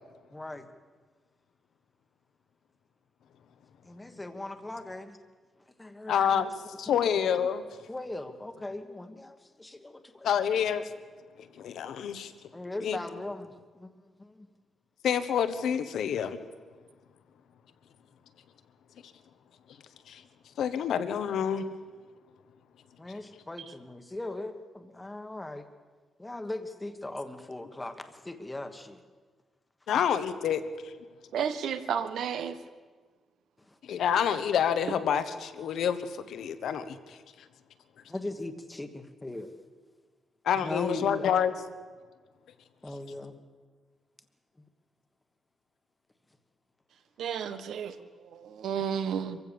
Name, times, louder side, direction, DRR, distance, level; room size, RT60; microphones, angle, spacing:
voice 1, 0.3-0.7 3.8-5.2 5.8-6.4 6.9-7.1 7.9-10.3 12.5-14.5 23.0-25.7 26.2-29.0 33.6-33.8 38.0-39.5 40.6-41.4 42.8-43.4, left 2 dB, 10° left, 1.3 m, -39 dB
voice 2, 6.1-6.5 6.8-7.6 10.2-10.8 11.6-12.3 12.8-13.0 15.0-16.4 20.1-20.2 20.6-21.7 29.9-30.9 33.8-37.2 40.4-41.5, left 8 dB, 75° left, 1.3 m, -28 dB
voice 3, 31.3-32.6 47.2-49.4, right 8 dB, 75° right, 1.3 m, -32 dB
24.5 x 15.5 x 7.0 m
wide cardioid pair, 155°, 0 cm